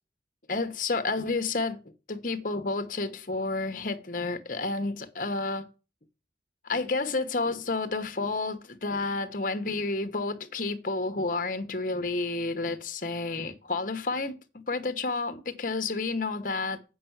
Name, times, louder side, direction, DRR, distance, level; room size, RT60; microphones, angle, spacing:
voice 1, 0.5-1.8 2.1-5.7 6.6-14.4 14.7-16.8, left 3 dB, 50° left, 1.1 m, -30 dB
8.5 x 5.6 x 7.3 m
head